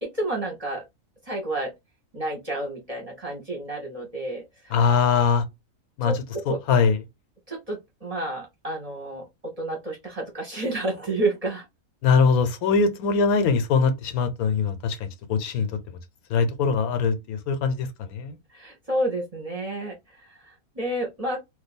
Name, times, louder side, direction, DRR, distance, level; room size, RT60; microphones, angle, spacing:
voice 1, 0.0-0.8 1.3-1.7 2.1-4.7 6.0-6.6 7.5-11.7 18.5-21.4, right 1 dB, 30° right, 0.8 m, -30 dB
voice 2, 4.7-5.4 6.0-6.1 6.5-7.0 12.0-16.0 16.3-18.4, left 5 dB, 85° left, 1.1 m, -22 dB
2.6 x 2.3 x 4.0 m
omnidirectional pair, 1.5 m